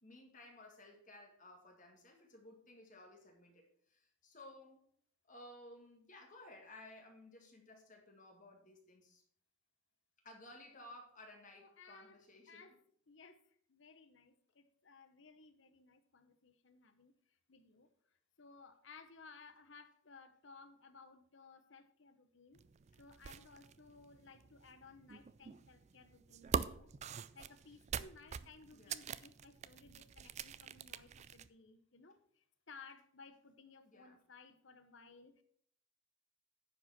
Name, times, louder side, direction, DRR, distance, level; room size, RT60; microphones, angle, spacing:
voice 1, 0.0-4.9 5.3-9.2 10.2-12.7 28.7-29.1 33.8-34.2, left 1 dB, 40° left, 1 dB, 2.1 m, -57 dB
voice 2, 11.5-12.8 13.1-17.1 17.5-22.6 23.0-26.9 27.3-35.4, left 4 dB, 65° left, 9 dB, 1.0 m, -59 dB
sound 1, 22.5-31.5, right 6 dB, 35° right, 0.3 m, -45 dB
10.0 x 5.2 x 5.8 m, 0.62 s
head